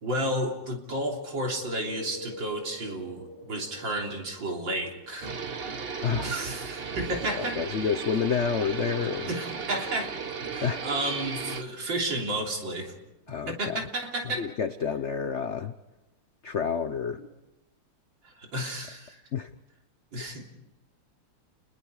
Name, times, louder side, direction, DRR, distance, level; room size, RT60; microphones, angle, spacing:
voice 1, 0.0-5.3 6.2-7.6 9.3-10.1 10.4-12.9 13.5-14.5 18.2-19.2 20.1-20.4, right 1 dB, 60° right, 1 dB, 4.0 m, -32 dB
sound 1, 1.3-12.9 17.2-17.3, left 1 dB, 40° left, 7.3 m, -48 dB
sound 2, 5.2-11.6, right 5 dB, 40° right, 0.9 m, -35 dB
voice 2, 7.4-9.3 10.6-10.8 13.3-13.8 14.4-15.7 16.4-17.2 19.3-19.5 20.2-20.4, left 6 dB, 75° left, 10 dB, 0.6 m, -29 dB
29.5 x 21.5 x 4.9 m, 0.99 s
omnidirectional pair, 2.4 m